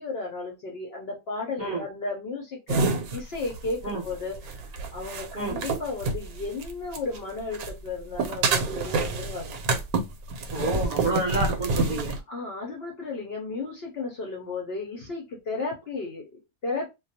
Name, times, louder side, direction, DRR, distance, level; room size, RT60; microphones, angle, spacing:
voice 1, 0.0-9.6 12.3-16.9, left 3 dB, 60° left, 0 dB, 0.7 m, -34 dB
sound 1, 2.7-7.2 7.5-12.2, right 3 dB, 90° right, 1.1 m, -28 dB
voice 2, 10.5-12.1, right 2 dB, 40° right, -4 dB, 0.8 m, -28 dB
2.3 x 2.2 x 2.7 m, 0.24 s
omnidirectional pair, 1.5 m